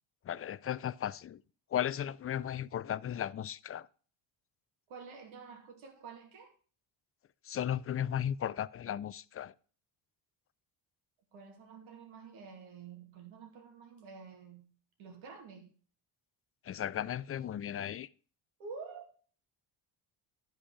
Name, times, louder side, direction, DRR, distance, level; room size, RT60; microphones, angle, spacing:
voice 1, 0.3-1.4 1.7-3.9 7.5-9.5 16.7-18.1, left 10 dB, 30° left, 0.4 m, -35 dB
voice 2, 4.9-6.5 11.3-14.7 15.0-15.7 18.6-19.0, right 5 dB, 85° right, 2.6 m, -49 dB
11.5 x 5.2 x 4.9 m
cardioid pair, 95°, 47 cm